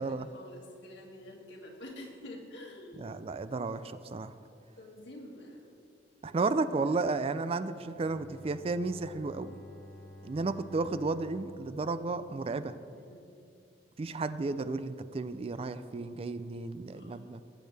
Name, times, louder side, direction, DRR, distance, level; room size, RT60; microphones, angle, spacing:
voice 1, 0.0-3.2 4.8-5.7 6.8-7.0 12.9-13.3 16.9-17.2, left 1 dB, 80° left, -1 dB, 2.2 m, -48 dB
voice 2, 3.0-4.3 6.2-9.6 10.2-12.8 14.0-17.4, right 3 dB, 35° right, 13 dB, 0.4 m, -33 dB
Bowed string instrument, 7.9-13.1, left 1 dB, 50° left, 1.1 m, -52 dB
19.0 x 8.4 x 3.4 m, 2.5 s
head